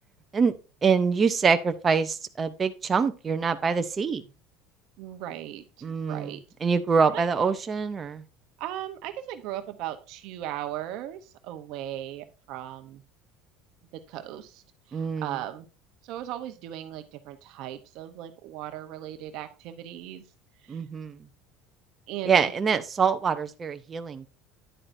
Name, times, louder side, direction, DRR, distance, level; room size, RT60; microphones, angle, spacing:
voice 1, 0.8-4.2 5.8-6.3 6.6-8.2 14.9-15.3 20.7-21.2 22.2-24.3, right 5 dB, 20° right, 8 dB, 0.6 m, -25 dB
voice 2, 5.0-5.6 6.0-6.4 7.1-7.5 8.6-13.0 13.9-14.6 14.9-15.7 16.0-20.2 20.6-20.8 22.1-22.5, right 12 dB, 50° right, 8 dB, 0.8 m, -37 dB
10.0 x 8.6 x 2.6 m, 0.33 s
cardioid pair, 175°, 0 cm